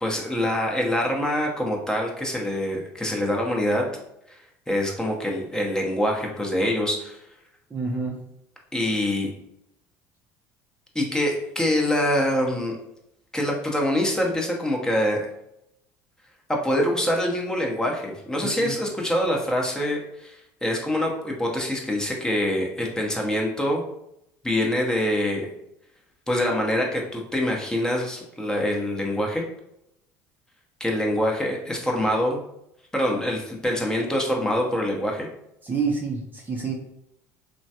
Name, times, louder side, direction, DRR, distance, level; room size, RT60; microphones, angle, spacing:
voice 1, 0.0-3.9 4.3-4.4 4.7-7.2 8.7-9.3 10.9-12.8 13.3-15.3 16.5-23.8 24.4-25.5 26.3-29.4 30.8-32.4 32.9-35.3, left 1 dB, 10° left, -1 dB, 0.8 m, -25 dB
voice 2, 7.7-8.2 18.4-18.7 35.6-36.7, right 5 dB, 25° right, 0 dB, 0.6 m, -28 dB
3.1 x 2.2 x 2.8 m, 0.80 s
supercardioid pair, 80°, 8 cm